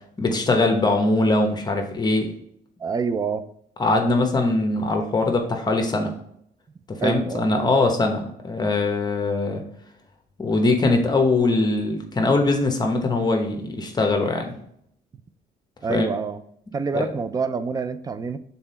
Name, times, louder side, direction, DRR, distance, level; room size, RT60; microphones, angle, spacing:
voice 1, 0.2-2.3 3.8-6.1 6.9-9.6 10.4-14.5 15.9-16.1 16.9-17.0, left 2 dB, 25° left, 3 dB, 1.0 m, -21 dB
voice 2, 2.8-3.4 7.0-7.5 15.8-16.4 16.7-18.4, right 5 dB, 20° right, 12 dB, 0.4 m, -26 dB
5.9 x 4.1 x 4.2 m, 0.70 s
cardioid pair, 110°, 17 cm